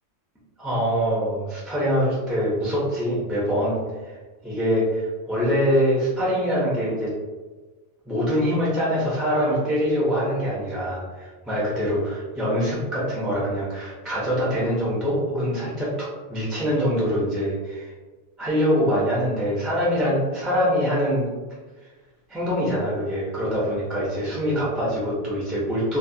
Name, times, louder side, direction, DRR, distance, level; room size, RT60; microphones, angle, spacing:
voice 1, 0.6-4.1 4.4-7.1 8.1-17.9 18.4-21.3 22.3-26.0, equal, ahead, -8 dB, 0.4 m, -24 dB
2.4 x 2.1 x 2.6 m, 1.3 s
omnidirectional pair, 1.1 m